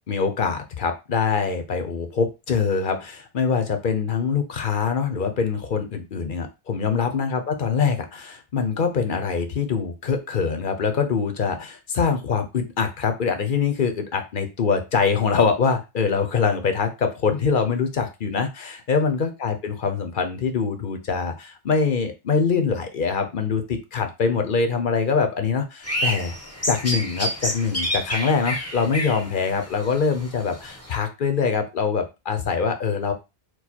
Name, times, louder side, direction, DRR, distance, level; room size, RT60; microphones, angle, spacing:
voice 1, 0.1-26.3 26.7-33.1, left 5 dB, 55° left, 7 dB, 0.9 m, -24 dB
sound 1, 25.8-30.9, equal, 15° left, 0.9 m, -29 dB
4.6 x 2.3 x 4.2 m, 0.26 s
omnidirectional pair, 1.1 m